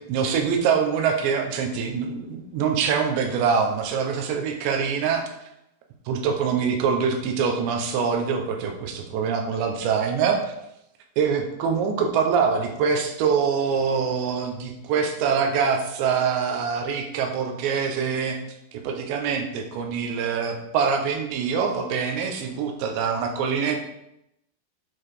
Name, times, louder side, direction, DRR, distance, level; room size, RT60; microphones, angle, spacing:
voice 1, 0.1-5.2 6.1-10.4 11.2-18.4 18.7-23.8, right 6 dB, 85° right, 4 dB, 3.3 m, -24 dB
8.1 x 4.7 x 4.9 m, 0.82 s
omnidirectional pair, 5.0 m